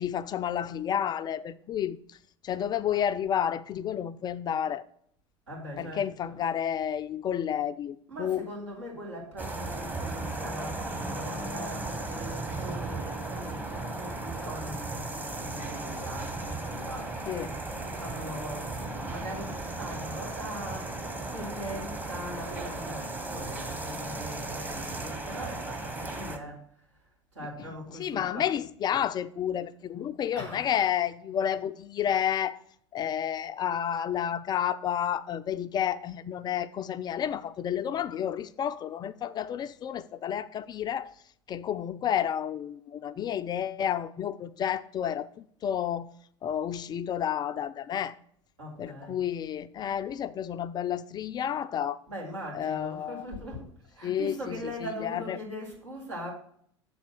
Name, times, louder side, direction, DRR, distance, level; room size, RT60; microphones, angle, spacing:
voice 1, 0.0-2.2 2.4-4.8 5.8-8.5 17.3-17.6 27.4-32.6 32.9-41.1 41.5-46.1 46.4-48.1 48.8-52.0 52.5-53.3 54.0-55.4, left 9 dB, 30° left, 0.3 m, -31 dB
voice 2, 5.5-6.4 8.1-17.2 17.8-26.6 27.3-28.5 30.3-30.7 48.6-49.2 52.1-56.3, equal, 80° right, 3.0 m, -41 dB
sound 1, 9.4-26.4, right 2 dB, 10° right, 1.0 m, -36 dB
7.0 x 4.2 x 5.9 m
figure-of-eight pair, 75°, 15 cm